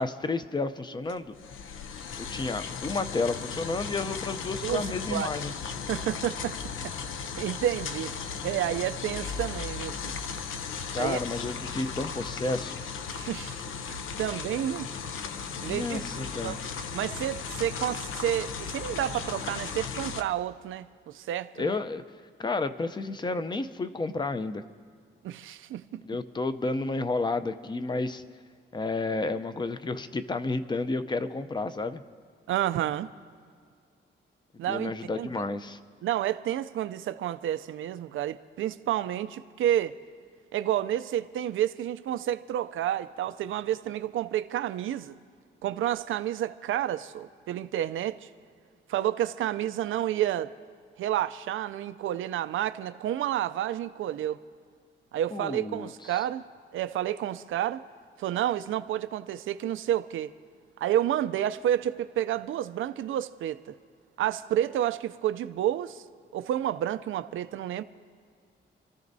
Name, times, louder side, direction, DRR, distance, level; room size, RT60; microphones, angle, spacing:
voice 1, 0.0-1.3 2.2-5.5 10.9-12.8 15.6-16.6 21.6-22.0 22.4-24.6 26.0-28.2 28.7-32.0 34.7-35.8 55.3-56.2, left 3 dB, 20° left, 0.6 m, -31 dB
sound 1, 1.1-20.2, left 6 dB, 90° left, 0.7 m, -36 dB
voice 2, 4.6-5.3 5.9-6.5 6.8-8.1 8.4-10.0 10.9-11.2 13.1-13.6 13.9-14.9 15.6-16.6 16.9-21.8 25.2-26.0 32.5-33.1 34.6-35.3 36.0-39.9 40.5-45.1 45.6-48.3 48.9-50.5 51.0-54.4 55.1-56.4 56.7-57.8 58.2-60.3 60.8-63.6 64.2-66.0 66.3-67.8, right 12 dB, 85° right, 0.5 m, -30 dB
28.5 x 14.0 x 2.7 m
wide cardioid pair, 135°, 20 cm